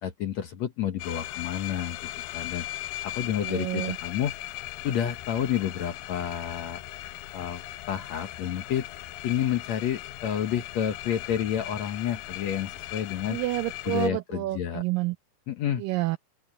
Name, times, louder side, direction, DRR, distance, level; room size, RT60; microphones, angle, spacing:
voice 1, 0.0-2.7 3.0-4.3 4.8-6.8 7.3-7.6 7.9-8.9 9.2-13.4 13.9-14.8 15.5-15.8, left 9 dB, 60° left, 1.9 m, -30 dB
sound 1, 1.0-14.1, left 15 dB, 80° left, 2.4 m, -38 dB
voice 2, 3.4-4.0 13.3-15.2 15.8-16.2, right 19 dB, 80° right, 2.0 m, -29 dB
open air
omnidirectional pair, 4.3 m